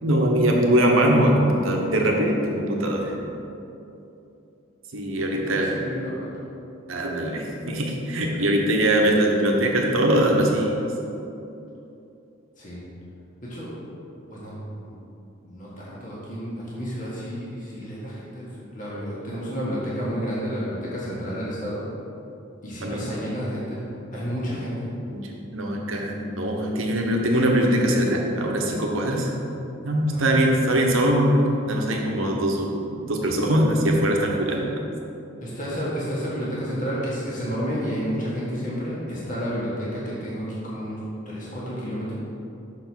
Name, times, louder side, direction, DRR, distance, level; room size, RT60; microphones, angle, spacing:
voice 1, 0.0-3.1 4.9-5.8 6.9-10.8 22.8-23.0 25.1-29.3 29.8-32.7 33.0-34.7, right 1 dB, 85° right, 0 dB, 1.1 m, -22 dB
voice 2, 5.3-6.3 12.6-12.8 13.5-13.7 14.3-14.9 15.4-18.5 18.7-21.8 22.6-23.8 24.1-24.7 30.1-30.3 34.6-34.7 35.4-41.0 41.2-42.1, equal, 40° left, -7 dB, 1.6 m, -31 dB
6.3 x 4.5 x 6.1 m, 2.8 s
head